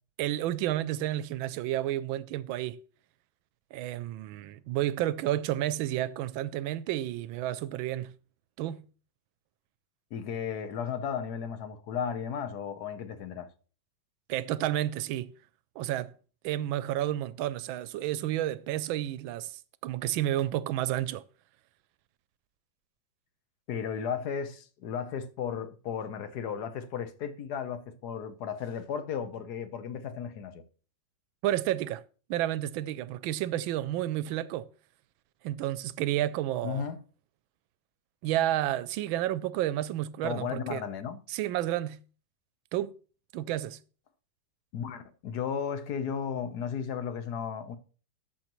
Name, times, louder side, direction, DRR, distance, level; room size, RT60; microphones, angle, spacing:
voice 1, 0.2-2.8 3.7-8.1 8.6-8.8 14.3-15.3 15.8-16.1 16.4-21.2 31.4-32.0 32.3-34.6 35.4-36.8 38.2-40.8 41.3-42.0 42.7-42.9 43.3-43.8, right 13 dB, 80° right, 1.3 m, -31 dB
voice 2, 10.1-13.5 23.7-30.6 36.6-37.0 40.2-41.2 44.7-47.8, left 7 dB, 60° left, 1.3 m, -34 dB
13.0 x 6.9 x 3.0 m
omnidirectional pair, 2.2 m